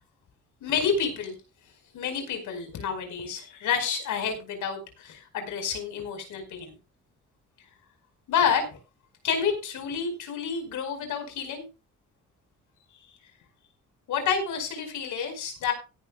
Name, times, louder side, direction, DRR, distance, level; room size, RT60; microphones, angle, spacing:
voice 1, 0.6-1.3 1.9-6.7 8.3-8.7 9.2-11.7 14.1-15.7, left 6 dB, 80° left, 6 dB, 5.0 m, -29 dB
17.0 x 11.0 x 2.3 m, 0.29 s
cardioid pair, 90°, 30 cm